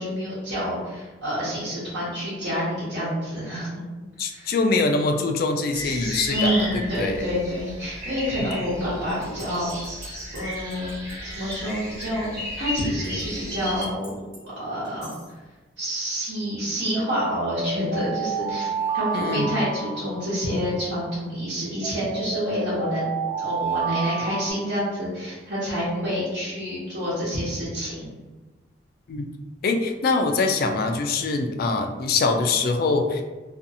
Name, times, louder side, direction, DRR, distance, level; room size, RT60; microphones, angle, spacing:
voice 1, 0.0-3.8 4.3-4.5 6.3-9.8 10.3-11.0 11.3-12.3 12.6-14.1 14.4-15.1 15.8-23.1 23.4-28.1, equal, 70° right, -11 dB, 1.0 m, -28 dB
voice 2, 4.2-7.2 19.1-19.5 29.1-29.3 29.6-33.2, left 3 dB, 50° left, 4 dB, 0.3 m, -23 dB
sound 1, 5.7-13.8, left 1 dB, 15° right, 0.9 m, -34 dB
sound 2, 9.2-11.1 11.5-11.6 12.0-12.1 12.8-13.2 13.8-14.4 14.8-15.2 16.9-20.7 21.8-24.5, right 5 dB, 35° right, 1.0 m, -30 dB
2.5 x 2.4 x 2.7 m, 1.2 s
head